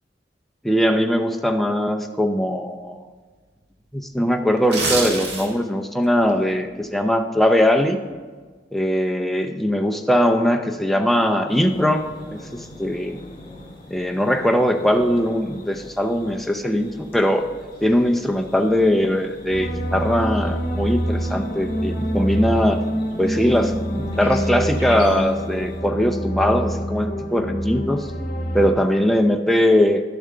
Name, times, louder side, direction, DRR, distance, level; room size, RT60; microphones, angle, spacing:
voice 1, 0.6-3.0 3.9-8.0 8.7-12.1 12.5-13.2 13.9-17.5 17.8-22.8 23.2-28.1 28.5-30.0, equal, ahead, 3 dB, 0.5 m, -20 dB
sound 1, 4.6-5.7 6.1-6.3, right 3 dB, 70° right, 1.6 m, -25 dB
sound 2, 11.5-25.8, left 1 dB, 35° left, 2.7 m, -42 dB
sound 3, 19.5-28.7, equal, 55° left, 1.1 m, -26 dB
11.5 x 6.9 x 3.7 m, 1.4 s
head